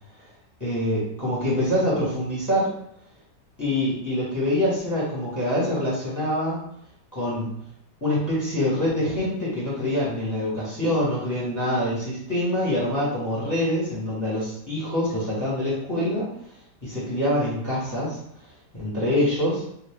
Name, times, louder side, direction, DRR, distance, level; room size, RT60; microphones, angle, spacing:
voice 1, 0.6-2.7 3.6-6.6 7.1-7.5 8.0-16.3 16.8-18.2 18.7-19.6, left 1 dB, 10° left, -7 dB, 1.2 m, -25 dB
2.7 x 2.6 x 3.6 m, 0.73 s
omnidirectional pair, 1.8 m